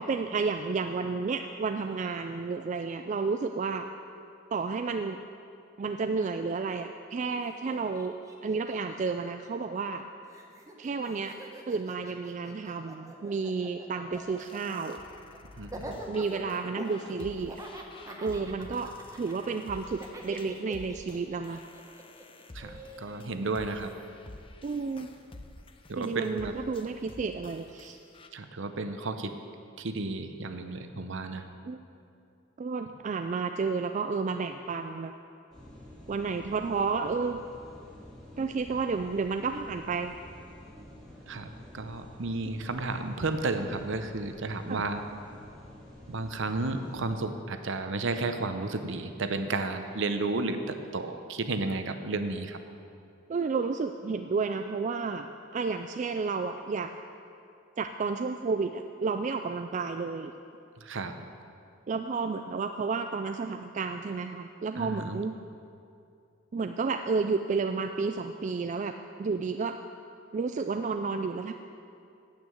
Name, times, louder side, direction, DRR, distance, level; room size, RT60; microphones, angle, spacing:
voice 1, 0.0-3.9 4.5-5.2 5.8-8.2 8.4-10.0 10.8-11.4 11.7-15.0 16.1-17.6 18.2-18.9 19.2-21.6 24.6-25.1 26.0-28.0 31.7-31.8 32.6-35.1 36.1-37.4 38.4-40.1 44.7-44.8 53.3-55.3 55.5-56.9 57.8-60.3 61.9-65.4 66.5-68.9 69.2-69.8 70.3-71.5, right 4 dB, 35° right, 7 dB, 0.3 m, -31 dB
Laughter, 7.4-7.5 7.7-10.0 10.3-23.3, right 1 dB, 15° right, 1.0 m, -45 dB
sound 1, 14.1-28.3, left 2 dB, 25° left, 0.6 m, -50 dB
voice 2, 15.6-16.0 22.5-24.0 25.9-26.6 28.3-29.4 29.8-31.4 41.3-45.0 46.1-52.6 60.8-61.2 64.7-65.2, right 3 dB, 60° right, 8 dB, 0.8 m, -33 dB
sound 2, 35.5-47.2, left 1 dB, ahead, 2.3 m, -49 dB
9.4 x 8.5 x 7.7 m, 2.5 s
head